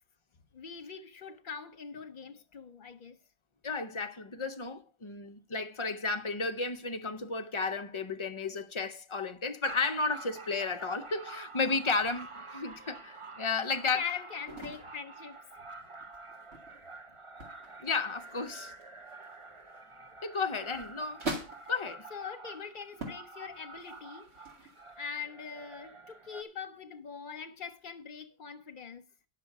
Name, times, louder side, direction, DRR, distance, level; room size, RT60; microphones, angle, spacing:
voice 1, 0.5-3.2 13.9-15.4 22.1-24.3 24.6-24.7 25.0-29.0, left 6 dB, 50° left, 1.0 m, -42 dB
voice 2, 3.6-14.1 17.8-18.7 20.2-21.2 21.7-22.1, left 4 dB, 35° left, 0.6 m, -33 dB
sound 1, 9.6-26.4, right 3 dB, 30° right, 0.9 m, -48 dB
sound 2, 14.5-15.0 16.0-17.0 17.4-17.8 18.1-19.8 20.4-21.9 22.5-22.6 22.9-23.3 23.7-25.1, right 2 dB, 80° right, 2.7 m, -42 dB
10.0 x 6.6 x 5.9 m
omnidirectional pair, 1.1 m